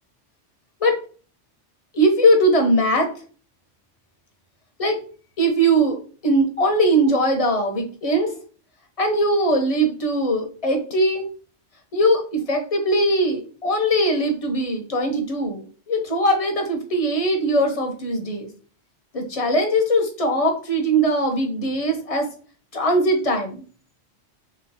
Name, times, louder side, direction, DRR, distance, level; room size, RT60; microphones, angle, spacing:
voice 1, 1.9-3.1 4.8-5.0 5.4-6.0 6.2-8.3 9.0-11.2 11.9-18.5 19.1-22.3 22.7-23.6, right 1 dB, 30° left, 3 dB, 0.9 m, -20 dB
3.1 x 3.1 x 4.0 m, 0.40 s
omnidirectional pair, 1.2 m